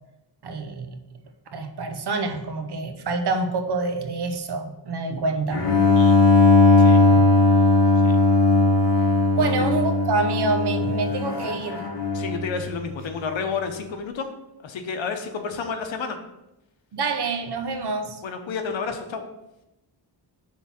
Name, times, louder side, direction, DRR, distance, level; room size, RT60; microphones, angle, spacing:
voice 1, 0.4-1.0 1.5-5.7 7.1-7.3 9.3-11.8 16.9-18.2, right 3 dB, 60° right, 6 dB, 1.0 m, -27 dB
Bowed string instrument, 5.5-12.5, left 2 dB, 65° left, 1.7 m, -18 dB
voice 2, 12.1-14.3 14.6-16.2 18.2-19.2, left 5 dB, 85° left, 5 dB, 1.0 m, -30 dB
6.0 x 3.8 x 5.8 m, 0.92 s
wide cardioid pair, 90°, 44 cm